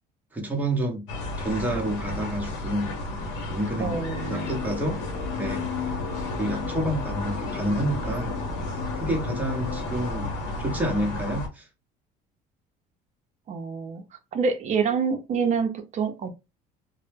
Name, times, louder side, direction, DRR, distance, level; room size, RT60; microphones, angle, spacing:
voice 1, 0.3-1.1 1.4-2.9 3.5-4.0 4.3-5.0 5.4-6.0 6.3-8.4 8.9-11.7, right 1 dB, 10° right, 0.7 m, -29 dB
sound 1, 1.1-11.5, left 2 dB, 80° left, 0.9 m, -32 dB
sound 2, 3.8-10.1, left 8 dB, 60° left, 0.5 m, -37 dB
voice 2, 3.8-4.5 13.5-14.0 14.3-16.3, right 5 dB, 40° right, 0.6 m, -27 dB
2.0 x 2.0 x 3.2 m
cardioid pair, 115°, 18 cm